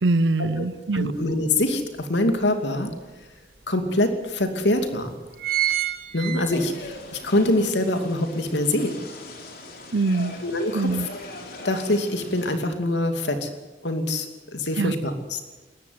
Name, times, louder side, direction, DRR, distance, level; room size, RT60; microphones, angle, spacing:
voice 1, 0.0-1.1 9.9-10.4 10.7-11.1 14.8-14.9, right 2 dB, 80° right, 19 dB, 0.7 m, -23 dB
voice 2, 0.9-2.9 3.7-5.1 6.1-8.9 10.4-10.9 11.6-13.5 13.8-15.4, left 1 dB, 85° left, 6 dB, 2.7 m, -24 dB
sound 1, 1.2-1.3 1.7-2.9 3.6-3.7 3.9-4.0 4.7-4.9 5.1-7.0 7.4-7.5, right 13 dB, 55° right, 1.5 m, -27 dB
sound 2, 6.5-12.6, left 2 dB, 55° left, 3.9 m, -40 dB
20.0 x 14.5 x 9.5 m, 1.2 s
head